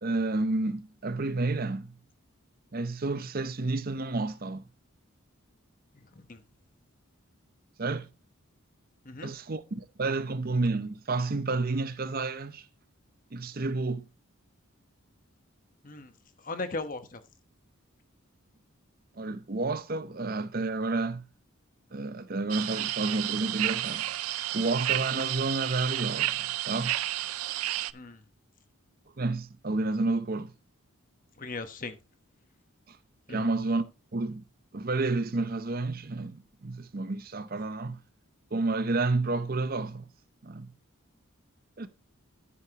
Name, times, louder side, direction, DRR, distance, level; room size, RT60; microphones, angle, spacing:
voice 1, 0.0-1.9 2.7-4.7 7.8-8.1 9.2-12.7 13.3-14.0 19.2-21.2 21.9-24.1 24.5-26.9 29.2-30.5 32.9-33.0 33.3-33.8 34.1-34.4 34.7-38.0 38.5-40.0 40.4-40.7 41.8-41.9, right 3 dB, 45° right, 0.7 m, -30 dB
voice 2, 16.4-17.2 27.9-28.2 31.4-32.0 33.3-33.5, left 3 dB, 40° left, 1.0 m, -38 dB
sound 1, 22.5-27.9, right 14 dB, 85° right, 0.5 m, -31 dB
10.0 x 9.6 x 2.9 m
head